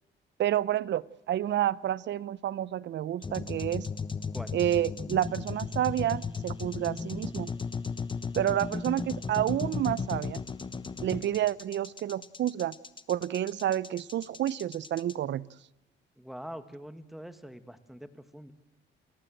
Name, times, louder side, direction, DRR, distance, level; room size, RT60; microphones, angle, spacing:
voice 1, 0.4-3.9 4.5-7.5 8.3-10.4 11.0-12.7 13.1-15.5, right 12 dB, 65° right, 21 dB, 0.7 m, -29 dB
sound 1, 3.2-15.1, left 5 dB, 25° left, 1.2 m, -36 dB
voice 2, 16.2-18.5, equal, ahead, 10 dB, 1.7 m, -44 dB
29.0 x 15.0 x 7.8 m, 1.0 s
cardioid pair, 90°, 20 cm